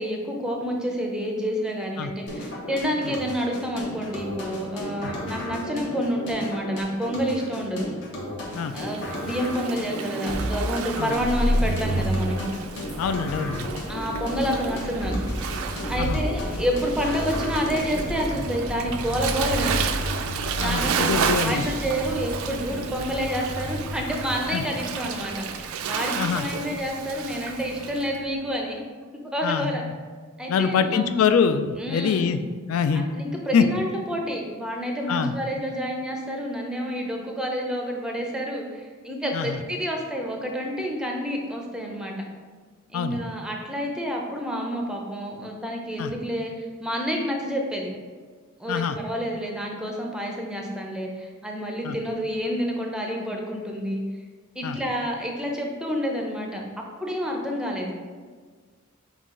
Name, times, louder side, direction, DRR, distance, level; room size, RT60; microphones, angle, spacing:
voice 1, 0.0-7.9 8.7-12.4 13.9-15.1 15.9-19.8 20.5-28.8 29.3-29.8 30.4-31.2 31.8-32.3 32.9-42.1 42.9-47.9 48.6-54.0 54.6-56.6 57.0-57.9, equal, 5° right, 0 dB, 0.5 m, -29 dB
sound 1, 2.3-18.3, equal, 55° left, 1.0 m, -33 dB
Waves surf, 8.6-28.1, right 7 dB, 80° right, 0.3 m, -33 dB
sound 2, 11.1-28.4, equal, 15° left, 1.0 m, -32 dB
voice 2, 13.0-13.7 16.0-16.2 20.6-21.7 24.5-24.6 26.2-26.4 29.4-29.9 30.5-32.4 32.7-33.1 33.5-33.6 35.1-35.3 39.3-39.6 42.9-43.2 46.0-46.1 48.7-49.0 51.8-52.0 54.6-54.8, left 6 dB, 80° left, 10 dB, 0.3 m, -24 dB
5.6 x 2.4 x 3.7 m, 1.5 s
head